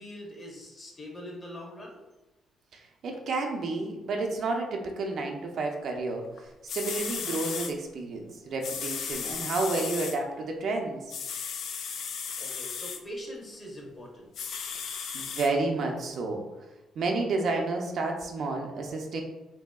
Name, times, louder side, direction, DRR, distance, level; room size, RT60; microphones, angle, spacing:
voice 1, 0.0-2.0 12.4-14.3, equal, 30° left, -2 dB, 0.8 m, -42 dB
voice 2, 2.7-11.1 14.7-14.9 15.1-16.4 17.0-19.2, right 3 dB, 65° right, 2 dB, 0.5 m, -31 dB
Aerosol Spray, 6.4-6.5 6.7-7.7 8.6-10.2 11.1-13.0 14.3-15.5 16.1-16.2, left 6 dB, 75° left, 0.3 m, -35 dB
3.0 x 2.7 x 2.3 m, 1.1 s
cardioid pair, 90°, 0 cm